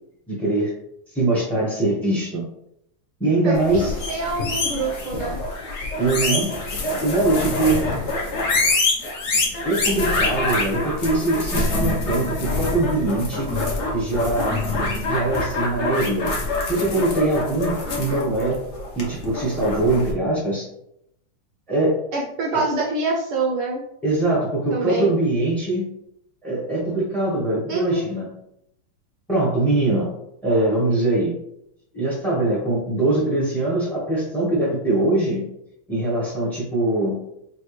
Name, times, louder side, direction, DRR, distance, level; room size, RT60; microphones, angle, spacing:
voice 1, 0.3-0.7 1.1-2.4 3.2-3.9 6.0-6.5 7.0-7.8 9.6-13.5 13.9-14.6 15.1-16.3 16.7-18.6 18.9-20.7 21.7-22.0 22.5-22.6 24.0-25.8 26.4-28.3 29.3-30.1 30.4-31.3 31.9-35.4 35.9-37.2, right 2 dB, ahead, -5 dB, 0.4 m, -22 dB
voice 2, 3.4-5.4 17.8-18.2 22.1-23.8 24.7-25.1 27.7-28.0, right 3 dB, 70° right, -1 dB, 1.1 m, -26 dB
sound 1, 3.6-20.1, left 2 dB, 55° left, 0.8 m, -25 dB
5.4 x 2.6 x 3.1 m, 0.79 s
omnidirectional pair, 2.4 m